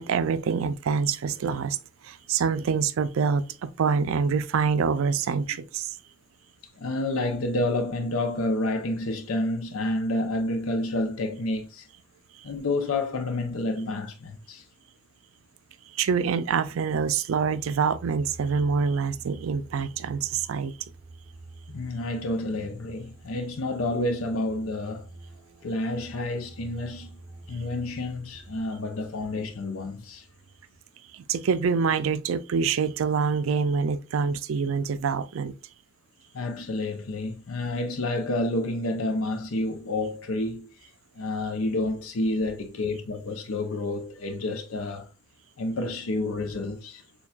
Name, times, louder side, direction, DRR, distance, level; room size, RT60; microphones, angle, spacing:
voice 1, 0.0-1.8 2.0-6.0 15.9-20.7 31.1-35.5, right 5 dB, 75° right, 0.4 m, -26 dB
voice 2, 6.8-11.9 12.4-14.6 21.7-25.1 25.6-27.2 27.5-30.3 36.3-40.7 41.2-45.1 45.6-47.0, left 2 dB, 90° left, 0.6 m, -29 dB
sound 1, 17.3-30.8, right 2 dB, 20° right, 0.5 m, -48 dB
6.8 x 2.3 x 2.3 m
head